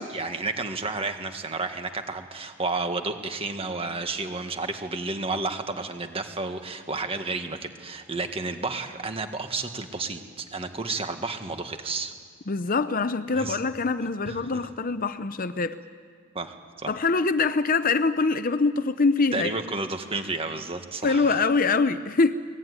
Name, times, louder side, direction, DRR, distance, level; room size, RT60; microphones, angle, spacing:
voice 1, 0.0-12.1 13.3-13.6 14.3-14.6 16.3-17.0 19.3-21.4, right 3 dB, 25° right, 6 dB, 1.7 m, -31 dB
voice 2, 12.5-15.8 16.9-19.6 21.0-22.3, left 4 dB, 40° left, 12 dB, 0.7 m, -24 dB
23.5 x 20.0 x 9.6 m, 2.1 s
head